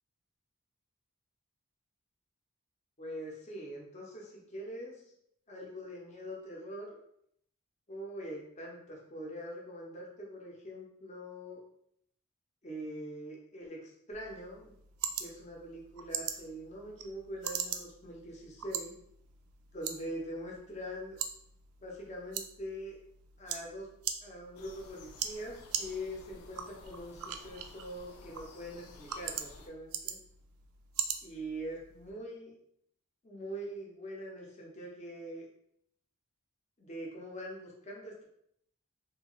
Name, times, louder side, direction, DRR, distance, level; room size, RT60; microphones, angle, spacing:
voice 1, 3.0-5.0 5.5-6.9 7.9-11.6 12.6-14.8 15.2-18.9 19.7-21.2 21.8-23.0 23.4-23.9 24.2-30.2 31.2-32.5 33.2-35.5 36.8-38.2, equal, 30° left, -2 dB, 0.6 m, -43 dB
sound 1, 14.1-32.1, right 8 dB, 80° right, 0.3 m, -42 dB
sound 2, 24.5-29.7, left 3 dB, 80° left, 0.4 m, -54 dB
2.7 x 2.4 x 3.0 m, 0.72 s
head